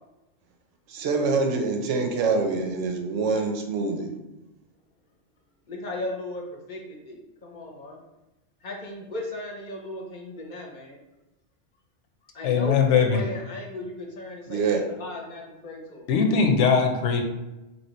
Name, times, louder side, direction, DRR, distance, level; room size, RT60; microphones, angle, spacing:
voice 1, 0.9-4.1 14.5-14.8, right 4 dB, 85° right, 3 dB, 1.0 m, -25 dB
voice 2, 5.7-8.0 8.6-11.0 12.3-16.0, left 1 dB, 45° left, 0 dB, 0.8 m, -36 dB
voice 3, 12.4-13.2 16.1-17.2, left 5 dB, 85° left, 3 dB, 1.0 m, -20 dB
3.1 x 2.8 x 4.1 m, 1.0 s
omnidirectional pair, 1.2 m